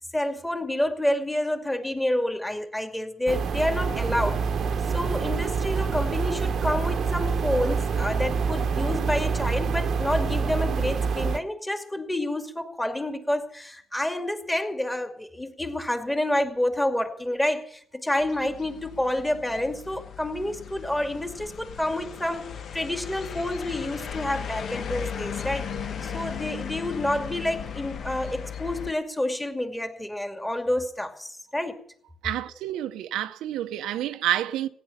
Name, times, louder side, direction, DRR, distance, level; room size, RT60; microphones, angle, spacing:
voice 1, 0.1-4.5 4.9-31.8, left 1 dB, 10° left, 2.4 m, -28 dB
sound 1, 3.3-11.4, right 5 dB, 60° right, 1.0 m, -26 dB
sound 2, 18.2-28.9, left 7 dB, 60° left, 1.4 m, -36 dB
voice 2, 32.2-34.7, right 12 dB, 90° right, 0.8 m, -29 dB
16.0 x 10.0 x 7.2 m
cardioid pair, 90°, 0 cm